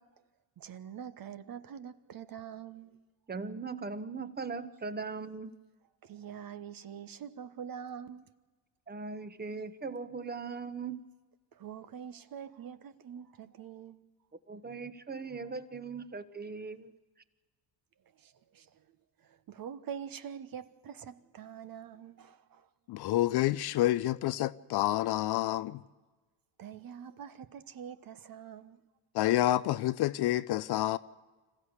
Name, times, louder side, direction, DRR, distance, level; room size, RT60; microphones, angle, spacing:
voice 1, 0.6-3.0 6.0-8.2 11.5-14.0 18.2-18.8 19.2-22.7 26.6-28.8, right 8 dB, 45° right, 1.2 m, -45 dB
voice 2, 3.3-5.5 8.9-11.0 14.5-16.9, right 4 dB, 20° right, 1.2 m, -39 dB
voice 3, 22.9-25.8 29.1-31.0, left 14 dB, 55° left, 0.6 m, -28 dB
26.0 x 14.5 x 8.1 m
hypercardioid pair, 65°, 49 cm